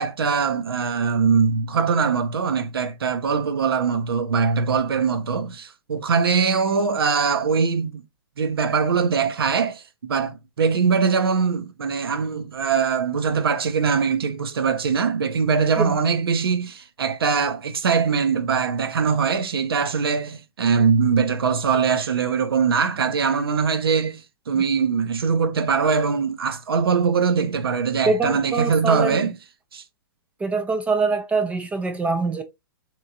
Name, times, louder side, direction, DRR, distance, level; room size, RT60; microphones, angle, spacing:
voice 1, 0.0-8.0 8.4-29.3 29.7-29.8, right 5 dB, 80° right, 0.7 m, -22 dB
voice 2, 28.1-29.2 30.4-32.4, right 3 dB, 10° right, 0.3 m, -23 dB
3.5 x 2.9 x 2.6 m
hypercardioid pair, 125°, 12 cm